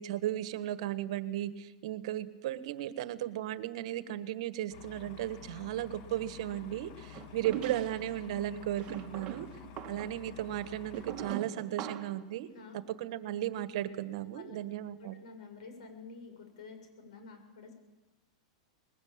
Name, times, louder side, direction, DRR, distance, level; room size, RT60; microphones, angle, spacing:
voice 1, 0.0-9.5 9.8-12.5 12.7-15.2, right 13 dB, 65° right, 12 dB, 1.5 m, -35 dB
sound 1, 4.7-11.3, left 10 dB, 50° left, 2.0 m, -50 dB
sound 2, 7.1-8.1 8.8-12.2, right 10 dB, 30° right, 1.9 m, -42 dB
voice 2, 15.0-17.7, left 4 dB, 75° left, 5 dB, 7.3 m, -49 dB
21.0 x 19.0 x 8.9 m, 1.1 s
supercardioid pair, 135°, 3 cm